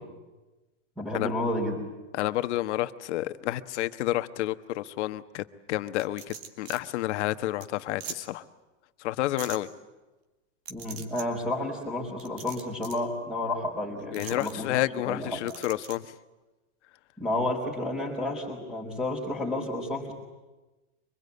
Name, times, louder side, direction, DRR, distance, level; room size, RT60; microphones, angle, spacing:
voice 1, 1.0-1.8 10.7-14.7 15.1-15.4 17.2-20.1, left 1 dB, ahead, -7 dB, 4.7 m, -31 dB
voice 2, 2.1-8.4 9.0-9.7 14.1-16.1, left 15 dB, 65° left, 11 dB, 1.4 m, -30 dB
sound 1, 6.0-6.8 7.2-7.3 7.6-7.7 8.0-8.2 9.4-9.6 10.7-11.3 12.2-13.0 14.1-14.5 15.5-16.0, right 7 dB, 50° right, 3.1 m, -41 dB
25.0 x 21.5 x 9.6 m, 1.1 s
supercardioid pair, 155°, 37 cm